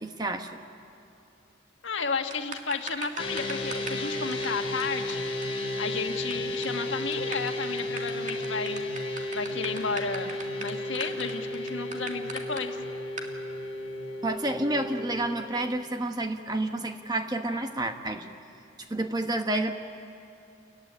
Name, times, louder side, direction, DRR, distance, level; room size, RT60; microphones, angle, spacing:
voice 1, 0.0-0.5 14.2-18.3 18.9-19.7, right 1 dB, 20° right, 6 dB, 1.1 m, -29 dB
voice 2, 1.8-5.2 5.6-8.9 9.3-10.3 10.6-12.8, left 4 dB, 75° left, 5 dB, 1.6 m, -33 dB
sound 1, 2.3-4.0 4.3-4.5 4.8-4.9 5.1-5.2 5.4-5.5 5.7-6.3 6.6-6.8 7.1-12.6 13.2-13.3, right 4 dB, 40° right, 2.1 m, -38 dB
sound 2, 3.2-15.3, left 1 dB, 30° left, 3.3 m, -33 dB
30.0 x 15.0 x 10.0 m, 2.6 s
head